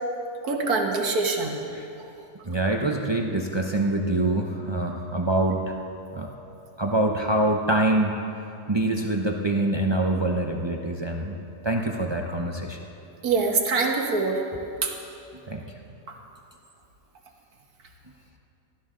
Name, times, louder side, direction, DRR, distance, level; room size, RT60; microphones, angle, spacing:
voice 1, 0.4-1.6 13.2-14.4 14.8-14.9, right 3 dB, 70° right, 1 dB, 1.8 m, -24 dB
voice 2, 2.5-5.7 6.1-6.3 6.8-8.2 8.7-11.4 11.6-12.8 15.5-15.6, right 2 dB, 30° right, 1 dB, 0.5 m, -25 dB
19.0 x 13.0 x 3.8 m, 2.8 s
omnidirectional pair, 1.7 m